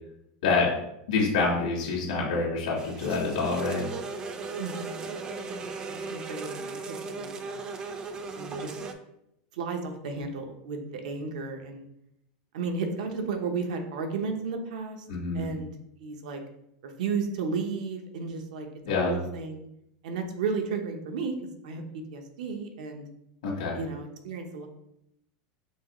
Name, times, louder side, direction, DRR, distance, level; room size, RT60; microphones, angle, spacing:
voice 1, 1.1-3.9 15.1-15.5 18.8-19.1 23.4-23.8, left 4 dB, 90° left, -5 dB, 1.5 m, -26 dB
sound 1, 2.8-8.9, right 4 dB, 20° right, 0.3 m, -37 dB
voice 2, 4.6-5.1 5.4-7.6 8.3-8.8 9.5-11.8 12.5-15.0 15.3-15.7 16.0-16.4 16.8-19.7 20.0-21.3 21.6-23.1 23.7-24.7, right 4 dB, 80° right, 5 dB, 0.8 m, -34 dB
4.5 x 3.9 x 3.0 m, 0.79 s
supercardioid pair, 170°, 4 cm